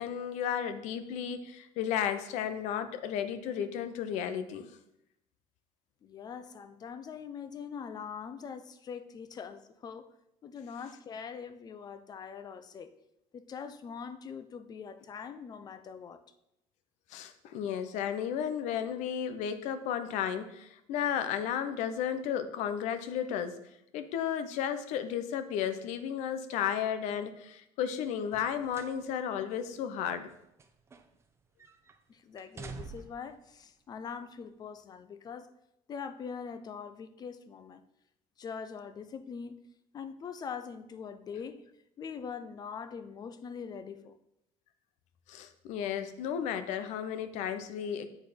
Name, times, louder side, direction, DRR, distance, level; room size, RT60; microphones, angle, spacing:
voice 1, 0.0-4.7 17.1-23.6 23.9-30.3 45.3-48.1, left 9 dB, 75° left, 0.9 m, -33 dB
voice 2, 6.0-10.1 10.4-12.9 13.3-16.2 32.1-35.5 35.9-37.8 38.4-39.6 39.9-41.6 42.0-44.1, left 6 dB, 35° left, 0.6 m, -43 dB
sound 1, 28.2-29.0 29.4-29.5 30.3-31.3 31.6-32.0 32.4-33.3 34.2-34.3, right 4 dB, 20° right, 0.7 m, -47 dB
8.3 x 6.4 x 5.1 m
cardioid pair, 145°, 12 cm